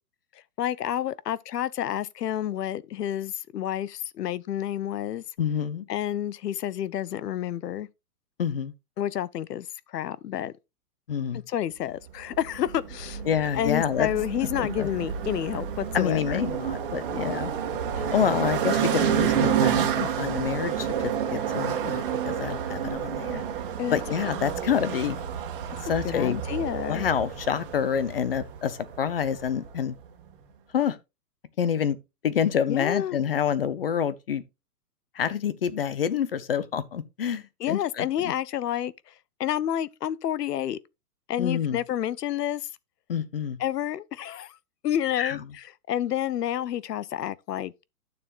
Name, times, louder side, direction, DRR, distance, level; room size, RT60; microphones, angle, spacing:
voice 1, 0.6-5.2 5.9-7.9 9.0-10.5 11.5-13.2 13.5-16.4 23.8-24.0 26.0-27.1 32.7-33.2 37.6-39.1 39.4-40.8 41.3-42.7 43.6-44.6 44.8-47.7, left 11 dB, 75° left, 0.8 m, -29 dB
voice 2, 5.4-5.9 8.4-8.7 11.1-11.4 13.3-14.1 14.6-14.9 15.9-17.5 18.0-23.4 23.9-25.2 25.9-26.4 26.9-29.9 30.7-31.0 31.6-32.0 32.2-34.4 35.2-38.3 41.4-41.8 43.1-43.6 45.2-45.4, left 8 dB, 35° left, 0.7 m, -27 dB
sound 1, 12.3-29.8, right 8 dB, 35° right, 1.6 m, -29 dB
12.0 x 7.0 x 2.4 m
hypercardioid pair, 170°, 49 cm